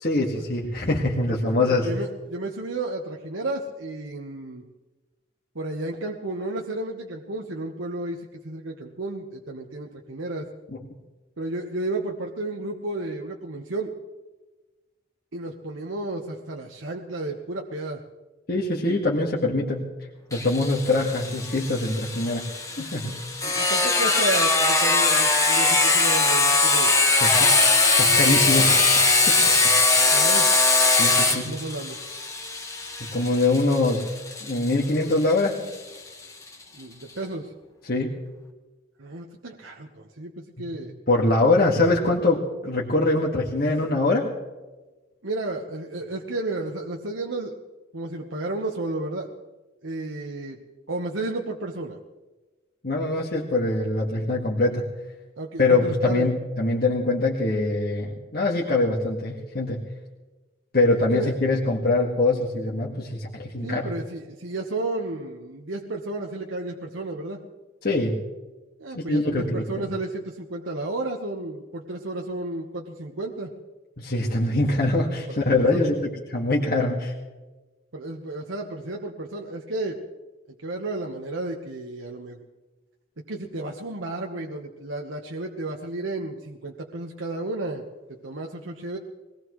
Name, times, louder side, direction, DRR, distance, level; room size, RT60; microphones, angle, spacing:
voice 1, 0.0-1.9 18.5-19.9 20.3-22.4 22.8-23.2 27.2-27.6 28.0-29.4 30.0-30.1 31.0-31.4 33.1-34.1 34.4-35.6 37.8-38.2 40.6-40.7 41.1-44.3 52.8-54.9 55.6-59.8 60.7-63.9 67.8-68.2 68.9-69.7 74.0-77.1, left 2 dB, 50° left, -3 dB, 1.8 m, -23 dB
voice 2, 1.4-4.6 5.5-10.4 11.4-13.9 15.3-18.0 23.4-26.9 29.9-30.5 31.2-32.0 36.7-37.5 39.0-40.9 45.2-47.6 47.9-49.3 49.8-50.6 50.9-52.0 55.4-56.3 61.1-61.3 63.6-67.4 68.8-73.5 75.3-75.9 77.9-80.0 80.6-82.4 83.3-87.8 88.2-89.0, right 2 dB, 85° right, 1 dB, 1.2 m, -32 dB
Sawing, 20.3-35.7, left 3 dB, 15° left, 1.5 m, -21 dB
22.5 x 18.5 x 3.2 m, 1.2 s
head